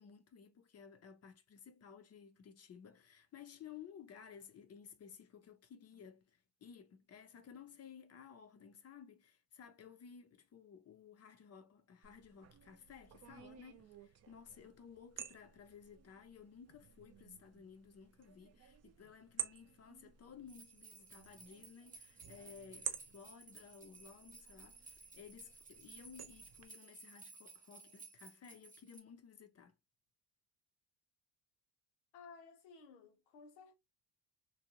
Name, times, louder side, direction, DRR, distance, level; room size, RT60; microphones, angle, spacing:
voice 1, 0.0-29.8, left 7 dB, 35° left, 0.5 m, -56 dB
sound 1, 12.0-26.7, right 9 dB, 35° right, 0.5 m, -51 dB
sound 2, 20.5-29.0, right 3 dB, 15° right, 0.9 m, -57 dB
voice 2, 32.1-33.8, left 5 dB, 90° left, 1.0 m, -56 dB
2.6 x 2.1 x 2.9 m
cardioid pair, 100°, 48 cm